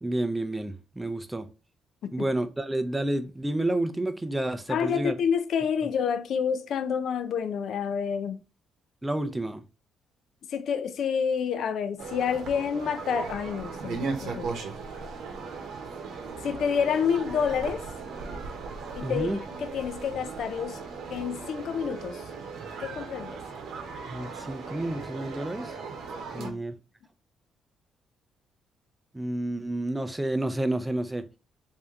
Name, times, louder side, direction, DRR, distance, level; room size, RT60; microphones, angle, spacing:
voice 1, 0.0-1.5 2.1-5.1 9.0-9.6 19.0-19.4 24.1-25.7 26.3-26.7 29.1-31.3, right 1 dB, 10° right, 0.5 m, -30 dB
voice 2, 4.7-8.4 10.5-14.5 16.4-17.8 18.9-20.8 21.1-22.2 22.8-23.4 26.4-26.6, left 7 dB, 70° left, 0.4 m, -28 dB
sound 1, 12.0-26.5, right 4 dB, 75° right, 0.8 m, -37 dB
3.2 x 2.7 x 3.6 m
cardioid pair, 90°, 0 cm